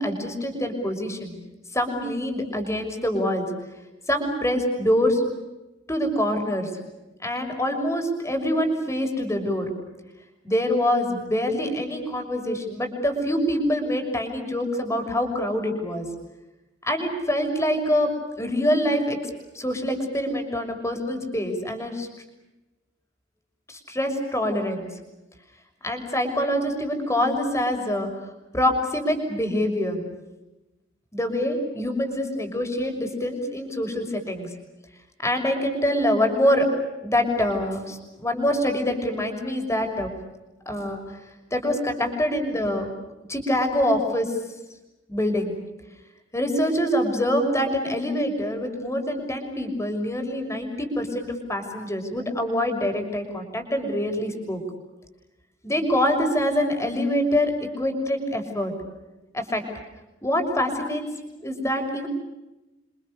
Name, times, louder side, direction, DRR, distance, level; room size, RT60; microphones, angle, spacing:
voice 1, 0.0-1.4 1.7-3.5 4.1-5.2 5.9-6.7 7.2-9.7 10.4-16.1 16.8-18.1 18.4-19.2 19.5-22.1 23.7-24.9 25.8-28.1 28.5-30.0 31.1-34.5 35.2-36.7 37.0-40.1 40.7-41.0 41.5-42.9 43.3-44.3 45.1-45.5 46.3-54.6 55.6-58.7 59.3-59.6 60.2-61.0 61.4-62.1, left 1 dB, 15° left, 5 dB, 6.2 m, -25 dB
29.5 x 26.5 x 6.8 m, 1.0 s
head